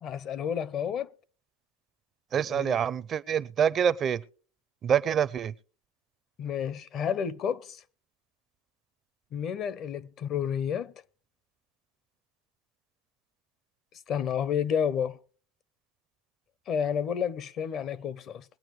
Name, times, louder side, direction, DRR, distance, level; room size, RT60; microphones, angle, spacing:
voice 1, 0.0-1.1 2.5-2.8 6.4-7.8 9.3-10.9 14.1-15.2 16.7-18.4, left 8 dB, 40° left, 0.6 m, -30 dB
voice 2, 2.3-4.2 4.8-5.5, right 8 dB, 35° right, 0.5 m, -26 dB
22.0 x 8.8 x 3.1 m
supercardioid pair, 115°, 0 cm